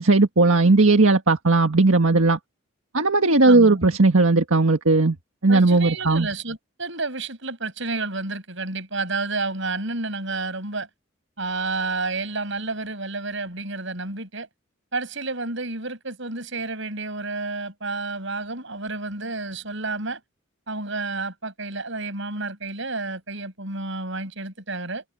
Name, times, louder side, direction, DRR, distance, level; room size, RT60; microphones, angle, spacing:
voice 1, 0.0-2.4 2.9-5.2 5.4-6.3, right 3 dB, 80° right, 1.6 m, -17 dB
voice 2, 3.4-4.0 5.5-10.9 11.4-14.5 14.9-20.2 20.7-25.0, right 3 dB, 65° right, 6.9 m, -30 dB
head